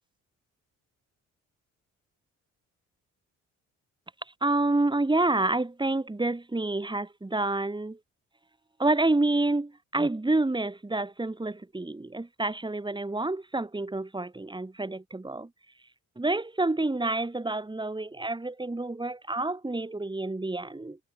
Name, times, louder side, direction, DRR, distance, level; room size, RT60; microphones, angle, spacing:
voice 1, 4.4-8.0 8.8-15.5 16.2-21.0, right 2 dB, 15° right, 6.6 m, -28 dB
cardioid pair, 90°, 30 cm